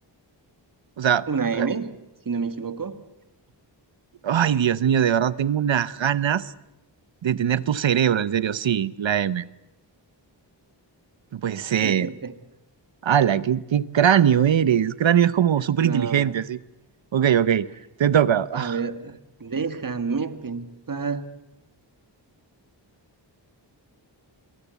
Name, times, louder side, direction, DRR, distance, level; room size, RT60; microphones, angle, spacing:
voice 1, 1.3-2.0 2.2-3.0 11.8-12.3 15.8-16.3 18.5-21.3, right 5 dB, 45° right, 10 dB, 1.8 m, -29 dB
voice 2, 4.2-6.5 7.2-9.4 11.3-12.1 13.0-16.6 17.1-17.7 18.0-18.8, right 9 dB, 90° right, 17 dB, 0.9 m, -21 dB
26.0 x 22.5 x 8.2 m, 0.93 s
wide cardioid pair, 105°, 44 cm